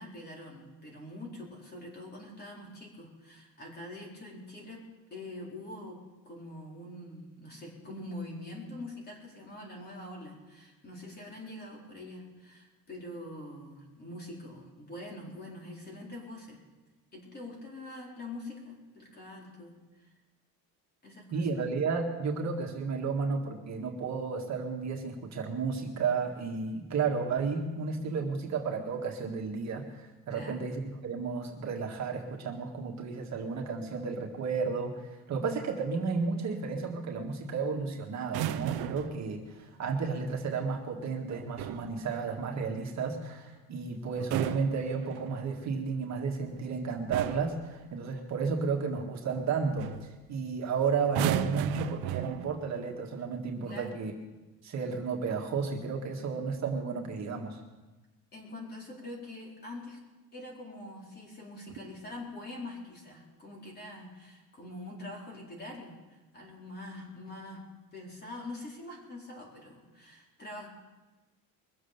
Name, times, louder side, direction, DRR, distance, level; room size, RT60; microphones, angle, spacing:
voice 1, 0.0-4.8 5.1-6.0 6.2-16.6 17.1-20.1 21.0-21.5 30.3-30.7 53.6-54.0 58.3-60.0 60.3-67.6 67.9-70.7, left 1 dB, 25° left, -2 dB, 4.4 m, -44 dB
voice 2, 21.3-49.9 50.3-54.1 54.6-57.6, right 5 dB, 45° right, 1 dB, 1.9 m, -32 dB
sound 1, 38.2-39.2 41.3-41.9 44.1-45.5 46.5-46.7 47.1-47.6 49.3-49.5 49.8-50.1 51.0-52.7 53.6-53.9, right 11 dB, 85° right, 0.9 m, -34 dB
23.0 x 7.6 x 6.9 m, 1.1 s
cardioid pair, 140°, 37 cm